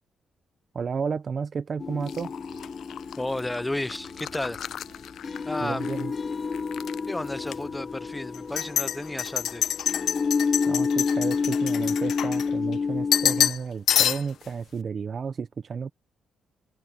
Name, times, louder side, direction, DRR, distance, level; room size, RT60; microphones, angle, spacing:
voice 1, 0.7-2.3 5.6-6.1 10.7-15.9, right 6 dB, 50° right, 0.8 m, -32 dB
sound 1, 1.8-13.5, left 5 dB, 40° left, 1.2 m, -30 dB
sound 2, 2.1-6.0 6.3-7.0 7.5-7.6 8.3-12.7 13.1-13.6 13.9-14.5, left 10 dB, 75° left, 0.4 m, -28 dB
sound 3, 2.2-3.7 4.0-8.8, right 10 dB, 75° right, 4.7 m, -58 dB
voice 2, 3.2-4.7 5.5-5.9 7.1-9.7, left 1 dB, 15° left, 0.8 m, -32 dB
cardioid pair, 85°, 0 cm